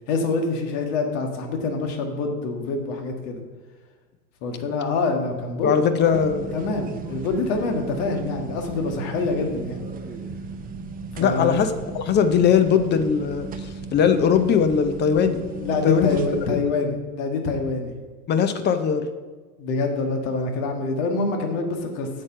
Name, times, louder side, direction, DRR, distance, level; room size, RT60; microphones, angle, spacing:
voice 1, 0.1-3.4 4.4-6.1 6.5-9.9 11.2-11.6 15.6-17.9 19.6-22.1, left 3 dB, 50° left, 4 dB, 2.0 m, -26 dB
voice 2, 5.6-6.5 11.2-15.4 15.8-16.2 16.5-16.6 18.3-19.1, left 7 dB, 20° left, 9 dB, 0.7 m, -20 dB
sound 1, 6.1-16.5, right 4 dB, 20° right, 0.8 m, -36 dB
8.6 x 6.5 x 5.7 m, 1.4 s
hypercardioid pair, 105°, 47 cm